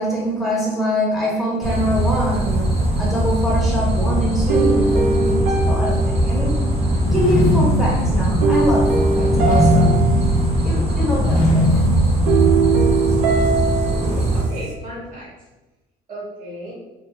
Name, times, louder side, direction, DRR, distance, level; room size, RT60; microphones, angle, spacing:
voice 1, 0.0-6.6 7.1-10.0 10.6-12.0, equal, ahead, -6 dB, 1.0 m, -24 dB
sound 1, 1.6-14.4, right 1 dB, 35° right, 0.7 m, -20 dB
sound 2, 4.5-7.0 8.4-10.9 12.3-14.7, right 4 dB, 85° right, 0.4 m, -21 dB
Bronze Dragon Fly, 6.9-13.0, left 1 dB, 50° left, 0.5 m, -21 dB
voice 2, 13.8-15.3 16.1-16.7, right 1 dB, 50° right, -6 dB, 1.4 m, -34 dB
2.5 x 2.3 x 2.8 m, 1.1 s
cardioid pair, 110°, 17 cm